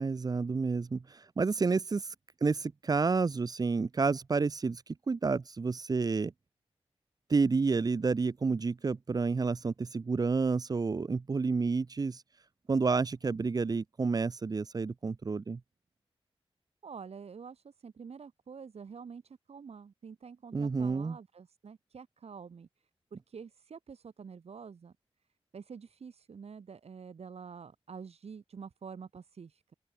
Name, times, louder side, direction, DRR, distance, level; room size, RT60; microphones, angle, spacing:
voice 1, 0.0-2.1 2.4-6.3 7.3-12.2 12.7-15.6 20.5-21.2, right 4 dB, 40° right, 0.6 m, -30 dB
voice 2, 16.8-22.7 23.1-24.9 25.5-29.7, right 6 dB, 75° right, 3.5 m, -47 dB
open air
wide cardioid pair, 130°, 11 cm